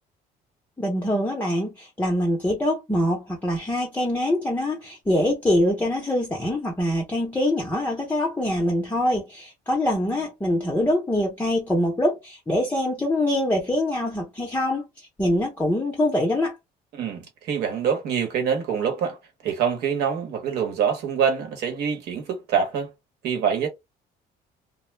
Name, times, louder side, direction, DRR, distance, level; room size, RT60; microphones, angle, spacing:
voice 1, 0.8-16.6, left 1 dB, 10° left, 0.6 m, -24 dB
voice 2, 16.9-19.2 19.4-22.9 23.2-23.7, right 7 dB, 75° right, 1.1 m, -25 dB
2.3 x 2.0 x 3.2 m
cardioid pair, 110°, 17 cm